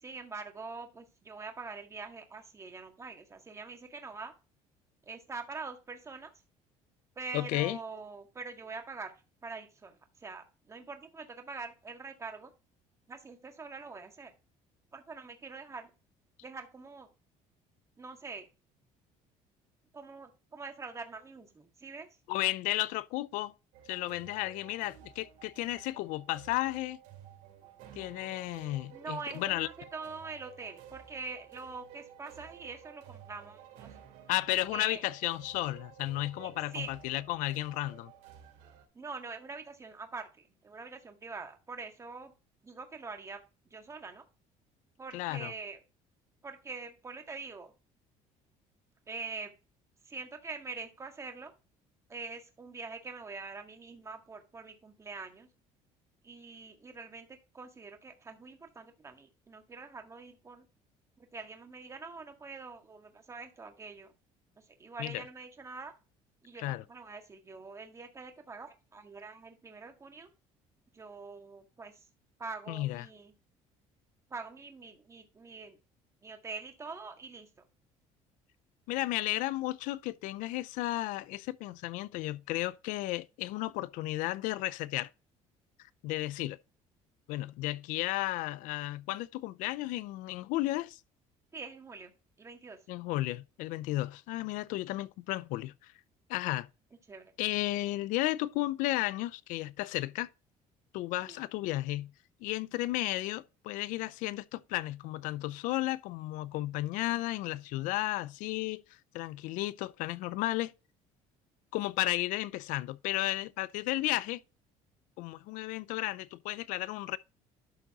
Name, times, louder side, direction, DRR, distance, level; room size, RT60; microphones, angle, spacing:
voice 1, 0.0-4.3 5.0-6.3 7.1-9.1 9.4-12.5 13.1-14.3 14.9-15.9 16.4-17.1 18.0-18.4 19.9-22.1 28.9-33.9 34.7-35.1 36.4-36.9 38.9-42.3 42.6-43.4 43.6-44.2 45.0-45.8 46.4-47.7 49.1-49.5 50.0-51.5 52.1-55.5 56.2-60.6 61.2-64.1 64.6-65.9 66.4-70.3 70.9-72.1 72.4-73.3 74.3-75.8 76.2-77.5 91.5-92.1 92.4-92.8 97.1-97.2 101.2-101.5, right 4 dB, 20° right, 1.7 m, -44 dB
voice 2, 7.3-7.8 22.3-23.5 23.9-27.0 28.0-29.7 34.3-38.1 45.1-45.5 65.0-65.2 66.6-66.8 72.7-73.1 78.9-85.1 86.0-86.6 87.3-91.0 92.9-95.9 96.3-96.7 97.4-100.3 100.9-102.1 102.4-108.8 109.1-110.7 111.7-114.4 115.2-117.2, left 17 dB, 80° left, 0.5 m, -33 dB
sound 1, 23.7-38.8, right 9 dB, 85° right, 2.9 m, -53 dB
12.0 x 4.0 x 3.6 m
cardioid pair, 125°, 13 cm